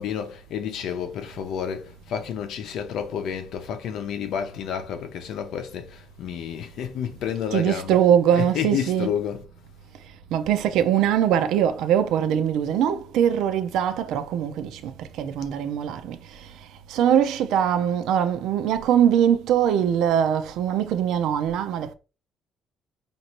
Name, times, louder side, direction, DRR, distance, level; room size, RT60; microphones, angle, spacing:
voice 1, 0.0-8.0 8.3-9.4, left 8 dB, 70° left, 0.7 m, -30 dB
voice 2, 7.5-9.1 10.3-21.9, right 9 dB, 90° right, 0.5 m, -22 dB
5.2 x 2.6 x 2.9 m
cardioid pair, 160°, 0 cm